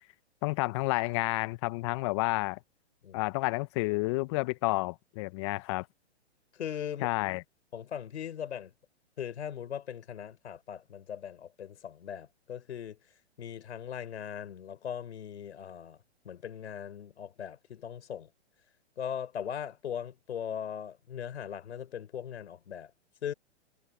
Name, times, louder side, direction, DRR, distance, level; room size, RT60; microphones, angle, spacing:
voice 1, 0.4-2.6 3.1-5.9 7.0-7.4, left 24 dB, 25° left, 0.5 m, -30 dB
voice 2, 6.5-7.1 7.7-8.7 9.2-13.0 13.4-16.0 16.2-18.3 19.0-22.9 23.2-23.3, left 9 dB, 70° left, 4.4 m, -39 dB
hypercardioid pair, 130°, 35 cm